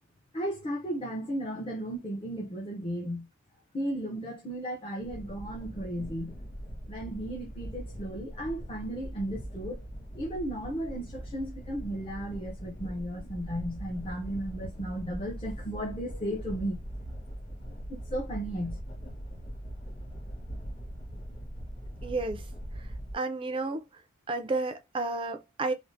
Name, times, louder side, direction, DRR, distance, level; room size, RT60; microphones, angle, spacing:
voice 1, 0.3-3.3 3.7-6.3 6.9-9.8 10.1-16.8 17.9-18.8, right 1 dB, 25° left, 0.6 m, -35 dB
sound 1, 5.0-23.1, equal, 40° left, 1.6 m, -41 dB
voice 2, 22.0-22.4 23.1-23.8 24.3-25.7, right 3 dB, 25° right, 0.4 m, -31 dB
3.3 x 2.1 x 2.6 m
head